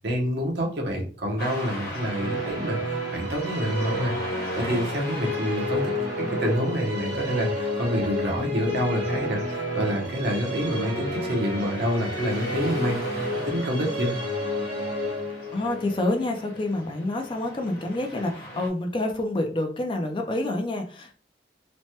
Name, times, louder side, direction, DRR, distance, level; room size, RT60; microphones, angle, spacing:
voice 1, 0.0-4.1 4.5-5.9 6.2-14.1, equal, 65° right, 0 dB, 0.8 m, -27 dB
Car passing by / Traffic noise roadway noise, 1.4-18.7, left 1 dB, 50° left, 0.9 m, -41 dB
Musical instrument, 1.6-17.1, left 1 dB, 85° right, 1.3 m, -31 dB
voice 2, 15.5-21.1, left 1 dB, 25° left, 3 dB, 0.4 m, -28 dB
3.1 x 2.1 x 2.8 m, 0.40 s
head